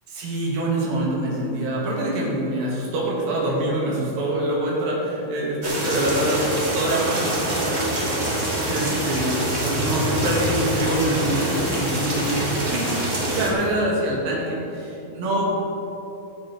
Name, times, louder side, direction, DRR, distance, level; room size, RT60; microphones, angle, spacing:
voice 1, 0.1-6.4 6.7-8.3 8.7-12.9 13.3-15.5, right 1 dB, 75° right, -5 dB, 3.9 m, -25 dB
sound 1, 5.6-13.5, right 1 dB, 30° right, 1.4 m, -25 dB
17.0 x 7.9 x 4.6 m, 3.0 s
omnidirectional pair, 4.1 m